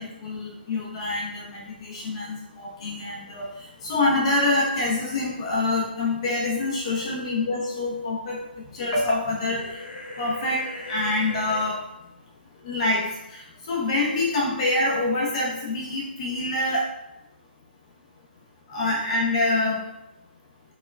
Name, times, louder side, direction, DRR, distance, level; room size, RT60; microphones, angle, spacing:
voice 1, 0.0-8.4 8.7-9.7 10.2-11.8 12.6-16.9 18.7-19.8, left 2 dB, 35° left, -3 dB, 0.5 m, -26 dB
sound 1, 9.5-11.6, left 1 dB, 85° left, 0.8 m, -38 dB
4.5 x 2.1 x 2.2 m, 0.87 s
hypercardioid pair, 155°, 6 cm